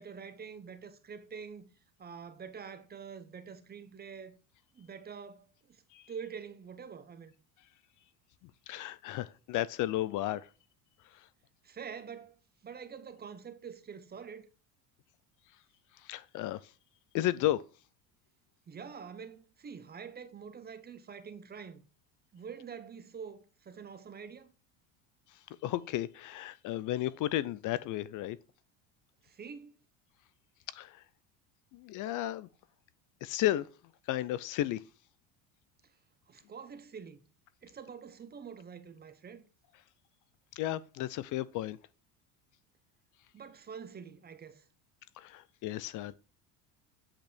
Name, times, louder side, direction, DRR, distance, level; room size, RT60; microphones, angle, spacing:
voice 1, 0.0-1.7 2.0-4.4 4.7-5.8 6.1-7.3 11.6-12.4 12.6-14.5 18.7-21.8 22.3-24.5 29.2-29.7 36.3-37.2 37.6-39.4 43.3-44.7, right 6 dB, 25° right, 0.9 m, -46 dB
voice 2, 8.7-10.5 16.0-16.6 17.1-17.6 25.6-28.4 30.7-31.0 31.7-32.5 33.2-33.7 34.1-34.8 40.6-41.8 45.2-46.1, left 14 dB, 50° left, 0.6 m, -33 dB
8.5 x 5.2 x 3.4 m
supercardioid pair, 120°, 40 cm